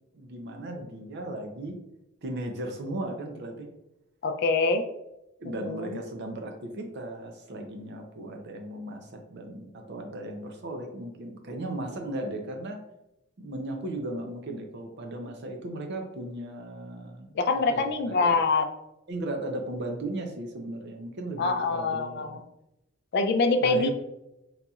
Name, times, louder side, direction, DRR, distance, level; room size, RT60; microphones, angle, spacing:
voice 1, 0.1-1.8 2.2-3.7 5.4-12.8 13.4-17.4 17.7-18.4 19.1-22.3 23.6-23.9, right 1 dB, 55° right, 3 dB, 0.5 m, -36 dB
voice 2, 4.2-4.9 5.5-6.0 17.3-18.7 21.4-22.4 23.1-23.9, left 3 dB, 50° left, 6 dB, 0.4 m, -25 dB
4.0 x 2.9 x 2.3 m, 0.87 s
head